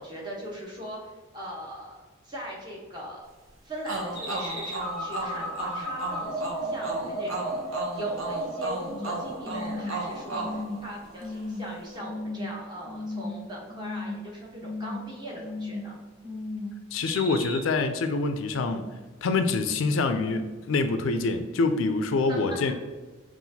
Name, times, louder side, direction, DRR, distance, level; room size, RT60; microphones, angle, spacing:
voice 1, 0.0-3.3 3.6-16.0 22.3-22.6, equal, 20° right, -3 dB, 0.9 m, -40 dB
sound 1, 3.9-11.4, right 2 dB, 75° right, 0.8 m, -35 dB
sound 2, 4.2-9.1 9.5-9.9 10.3-10.8 11.2-11.6 12.0-12.5 12.9-13.4 13.7-14.2 14.5-15.0 15.4-15.9 16.2-16.7 17.1-17.6, left 1 dB, ahead, 1.1 m, -35 dB
voice 2, 16.9-18.9 19.2-22.7, left 3 dB, 70° left, 8 dB, 0.4 m, -26 dB
5.6 x 2.5 x 2.7 m, 1.3 s
head